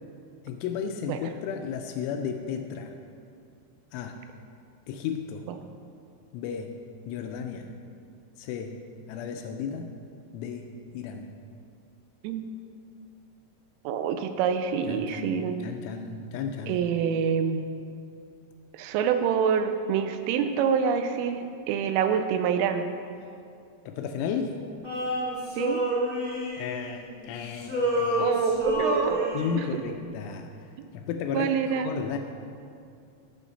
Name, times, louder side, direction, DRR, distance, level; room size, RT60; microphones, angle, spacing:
voice 1, 0.4-2.9 3.9-4.2 4.9-5.4 6.3-6.7 7.1-7.7 8.4-8.8 9.1-9.9 10.3-10.6 10.9-11.3 14.9-16.8 23.9-24.6 26.6-28.3 29.3-30.5 30.9-32.2, left 7 dB, 85° left, 5 dB, 2.9 m, -34 dB
voice 2, 12.2-12.6 13.8-15.6 16.7-17.7 18.7-22.9 25.6-25.8 28.2-29.8 31.3-31.9, right 7 dB, 85° right, 8 dB, 3.1 m, -26 dB
Male singing, 24.8-27.3 27.6-29.7, equal, 55° right, 0.5 m, -28 dB
16.0 x 6.4 x 4.1 m, 2.4 s
omnidirectional pair, 5.8 m